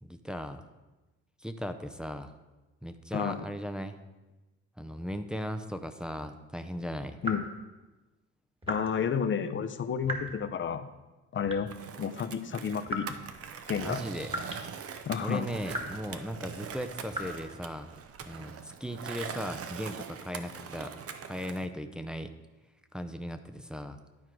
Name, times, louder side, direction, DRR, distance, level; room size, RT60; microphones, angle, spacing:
voice 1, 0.0-0.7 1.4-2.3 2.8-4.0 4.8-7.2 13.7-14.3 15.2-17.9 18.2-20.9 21.2-22.3 22.9-24.0, equal, 5° right, 7 dB, 0.5 m, -37 dB
voice 2, 3.1-3.5 7.2-7.5 8.7-10.9 11.3-11.7 12.0-13.2 13.7-14.0 15.1-15.5, left 7 dB, 40° left, 10 dB, 0.6 m, -31 dB
sound 1, 7.2-7.5 8.6-8.9 10.0-10.4 11.4-11.9 12.9-13.2 14.3-14.7 15.0-15.1 15.7-16.1 17.1-17.2, right 1 dB, 20° right, 1.5 m, -37 dB
Skateboard, 11.7-21.7, right 7 dB, 50° right, 0.6 m, -42 dB
11.0 x 4.6 x 4.6 m, 1.1 s
cardioid pair, 90°, 30 cm